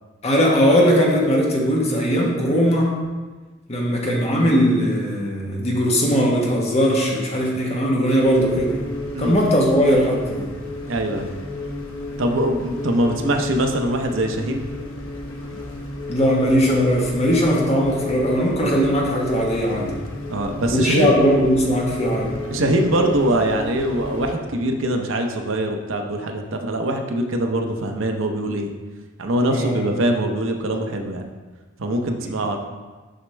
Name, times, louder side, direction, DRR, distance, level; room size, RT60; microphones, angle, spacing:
voice 1, 0.2-3.0 3.7-8.8 9.2-10.5 16.1-19.9 20.7-22.3 29.5-29.8 32.2-32.3, equal, 30° left, -2 dB, 1.2 m, -19 dB
sound 1, 8.2-24.4, left 1 dB, 75° left, 0.9 m, -32 dB
voice 2, 10.8-11.3 12.2-14.7 20.3-21.1 22.5-28.7 29.2-31.3 31.8-32.6, right 1 dB, 65° right, 4 dB, 0.7 m, -23 dB
6.5 x 6.1 x 3.3 m, 1.3 s
head